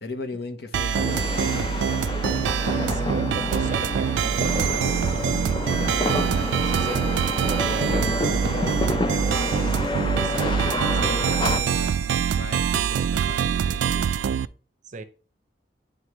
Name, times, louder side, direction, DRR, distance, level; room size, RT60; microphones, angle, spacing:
voice 1, 0.0-2.0 11.1-14.1, left 3 dB, 65° left, 0.8 m, -38 dB
sound 1, 0.7-14.5, right 8 dB, 85° right, 0.3 m, -24 dB
sound 2, 0.9-11.6, left 2 dB, 25° left, 0.5 m, -29 dB
voice 2, 2.8-10.6 10.9-11.2 14.3-14.4 14.8-15.0, right 3 dB, 45° right, 0.6 m, -38 dB
9.2 x 3.4 x 3.0 m
head